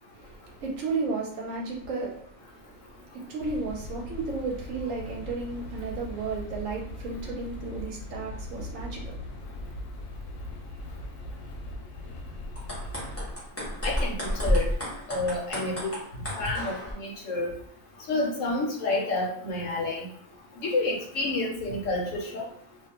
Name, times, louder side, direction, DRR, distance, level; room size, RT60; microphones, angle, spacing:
voice 1, 0.1-9.7, right 4 dB, 70° right, 0 dB, 0.9 m, -34 dB
sound 1, 3.4-13.2, left 1 dB, 85° left, 1.1 m, -40 dB
sound 2, 12.6-16.9, left 1 dB, 10° left, 0.8 m, -31 dB
voice 2, 13.8-14.1 14.4-14.6 15.1-15.9 16.4-17.5 18.1-20.1 20.6-22.4, left 2 dB, 65° left, -1 dB, 1.0 m, -29 dB
2.5 x 2.1 x 2.8 m, 0.64 s
omnidirectional pair, 1.5 m